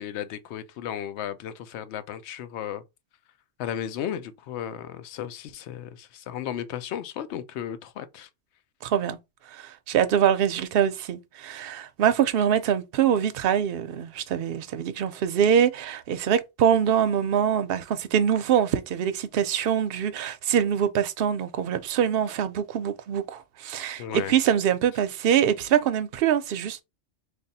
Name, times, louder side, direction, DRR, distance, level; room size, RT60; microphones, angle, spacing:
voice 1, 0.0-2.8 3.6-8.3 24.0-24.3, left 10 dB, 70° left, 0.8 m, -34 dB
voice 2, 8.8-9.2 9.5-26.8, right 9 dB, 60° right, 0.7 m, -24 dB
3.4 x 2.3 x 4.0 m
omnidirectional pair, 1.2 m